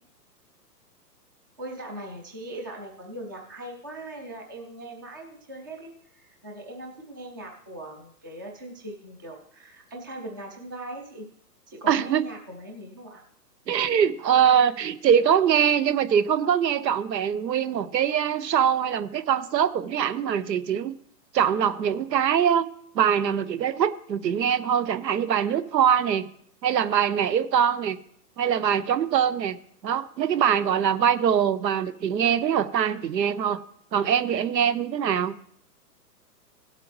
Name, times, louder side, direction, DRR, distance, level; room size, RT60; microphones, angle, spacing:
voice 1, 1.6-11.3 11.7-13.2, right 1 dB, 15° right, 0.4 m, -40 dB
voice 2, 11.9-12.2 13.7-21.0 21.3-22.7 22.9-26.3 26.6-28.0 28.4-29.6 29.8-33.6 33.9-35.4, right 8 dB, 85° right, 0.9 m, -23 dB
16.5 x 7.6 x 3.1 m
hypercardioid pair, 145°, 49 cm